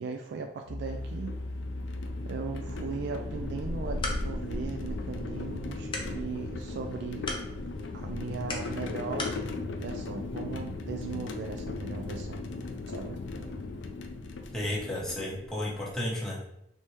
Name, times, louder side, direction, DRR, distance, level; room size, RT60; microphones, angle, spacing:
voice 1, 0.0-1.4 2.2-7.4 7.9-9.4 9.8-12.4 12.9-13.2, right 5 dB, 65° right, 4 dB, 0.3 m, -38 dB
sound 1, 0.7-12.4, left 1 dB, 85° right, 0.8 m, -43 dB
sound 2, 0.9-15.9, left 2 dB, 90° left, 0.4 m, -37 dB
sound 3, 3.6-9.4, left 2 dB, 25° left, 0.5 m, -41 dB
voice 2, 14.5-16.4, left 1 dB, 5° left, -6 dB, 0.8 m, -33 dB
3.3 x 2.7 x 3.1 m, 0.80 s
head